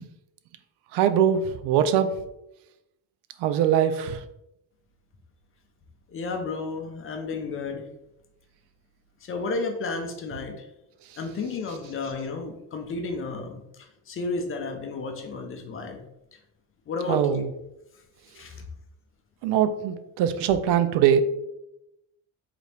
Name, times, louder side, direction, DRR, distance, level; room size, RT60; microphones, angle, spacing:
voice 1, 0.9-2.1 3.4-4.2 17.1-17.5 19.4-21.2, right 9 dB, 85° right, 11 dB, 0.5 m, -22 dB
voice 2, 6.1-7.8 9.2-10.7 11.2-13.6 14.1-16.0 16.9-17.4 18.3-18.6, left 3 dB, 35° left, 5 dB, 0.5 m, -32 dB
4.0 x 2.8 x 3.3 m, 0.87 s
cardioid pair, 145°, 40 cm